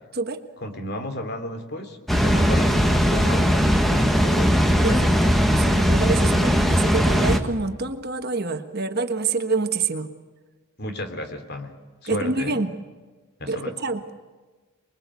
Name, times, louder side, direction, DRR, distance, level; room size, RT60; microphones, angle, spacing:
voice 1, 0.6-5.1 10.8-11.8 12.0-12.6 13.4-13.7, left 1 dB, 45° left, 7 dB, 3.2 m, -32 dB
Water, 2.1-7.4, equal, ahead, 1.5 m, -19 dB
voice 2, 4.8-5.3 5.6-10.1 12.0-12.7 13.5-14.0, right 3 dB, 45° right, 8 dB, 1.5 m, -27 dB
25.5 x 22.0 x 8.4 m, 1.3 s
head